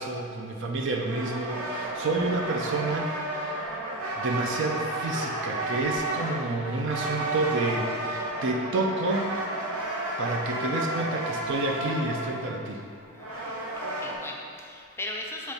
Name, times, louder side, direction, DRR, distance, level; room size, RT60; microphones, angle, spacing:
voice 1, 0.0-3.8 4.2-9.3 10.2-12.8, right 2 dB, 60° right, 1 dB, 0.6 m, -29 dB
sound 1, 1.0-14.2, right 1 dB, 75° right, 1.1 m, -32 dB
voice 2, 13.1-13.5 14.0-15.5, left 2 dB, 10° left, 0 dB, 0.4 m, -38 dB
7.3 x 3.5 x 4.1 m, 2.4 s
head